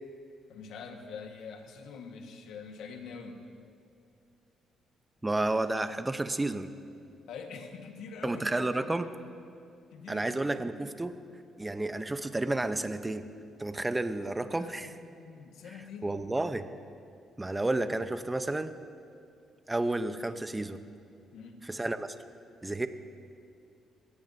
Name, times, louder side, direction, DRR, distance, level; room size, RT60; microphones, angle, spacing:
voice 1, 0.5-3.5 7.3-9.0 9.9-10.5 14.5-16.2 21.3-21.7, left 5 dB, 80° left, 4 dB, 1.5 m, -45 dB
voice 2, 5.2-6.7 8.2-9.1 10.1-11.2 11.6-13.2 13.6-14.9 16.0-16.7 17.4-18.7 19.7-20.8 21.6-22.1 22.6-22.9, right 2 dB, 15° right, 10 dB, 0.8 m, -31 dB
22.0 x 17.0 x 2.7 m, 2.6 s
cardioid pair, 90°, 0 cm